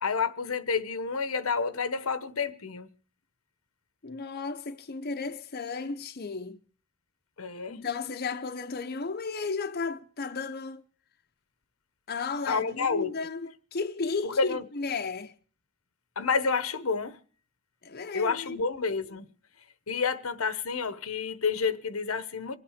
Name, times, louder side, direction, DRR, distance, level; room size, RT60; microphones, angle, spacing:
voice 1, 0.0-2.9 7.4-7.8 12.5-13.1 14.2-14.6 16.2-17.2 18.1-19.2 19.9-22.6, left 5 dB, 80° left, 1.0 m, -29 dB
voice 2, 4.0-6.6 7.7-10.8 12.1-15.3 17.8-18.6, left 4 dB, 45° left, 0.8 m, -34 dB
25.0 x 8.7 x 5.0 m
head